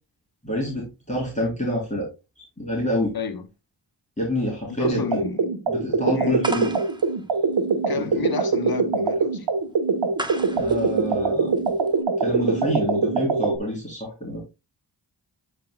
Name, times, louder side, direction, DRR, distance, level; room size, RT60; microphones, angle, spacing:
voice 1, 0.4-2.1 2.6-3.1 4.2-5.0 5.7-6.7 8.0-8.2 10.5-11.6 12.2-14.4, equal, 15° left, 3.6 m, -27 dB
voice 2, 3.1-3.5 4.7-5.6 6.1-6.4 7.9-9.5, left 5 dB, 55° left, 1.1 m, -30 dB
sound 1, 4.8-13.6, right 4 dB, 70° right, 1.3 m, -23 dB
sound 2, 6.4-12.0, right 1 dB, 10° right, 1.1 m, -37 dB
11.5 x 4.8 x 2.2 m
cardioid pair, 50°, 45 cm